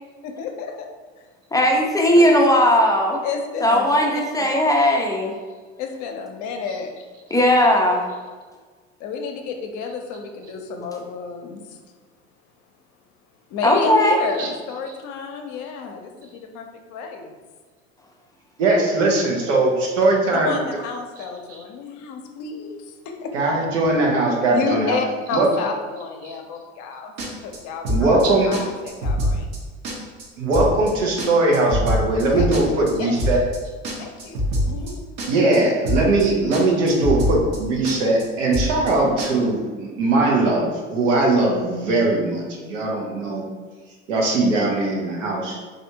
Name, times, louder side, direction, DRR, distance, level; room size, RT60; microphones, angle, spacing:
voice 1, 0.2-0.9 2.2-2.4 3.2-4.0 4.4-4.5 5.8-7.1 7.6-7.7 9.0-11.8 13.5-17.4 19.5-19.6 20.3-23.3 24.5-27.1 27.4-27.8 28.1-29.6 31.5-31.6 32.3-33.1 34.0-35.0, left 5 dB, 50° left, 3 dB, 0.6 m, -31 dB
voice 2, 1.5-3.2 3.6-5.3 7.3-8.0 13.6-14.2, equal, 10° left, -1 dB, 0.4 m, -17 dB
voice 3, 18.6-20.5 23.3-25.0 25.3-25.5 27.9-28.5 30.4-33.4 35.3-43.5 44.1-45.7, right 2 dB, 80° right, -1 dB, 0.9 m, -20 dB
sound 1, 27.2-27.6 27.8-28.2 28.5-28.6 28.9-29.6 29.8-30.2 30.5-30.9 31.2-32.9 33.2-33.6 33.8-34.9 35.2-35.6 35.8-36.2 36.5-36.6 36.9-37.6 37.8-38.2 38.5-38.9 39.2-39.3, equal, 55° right, 1.0 m, -24 dB
3.3 x 2.6 x 2.8 m, 1.4 s
hypercardioid pair, 75°, 37 cm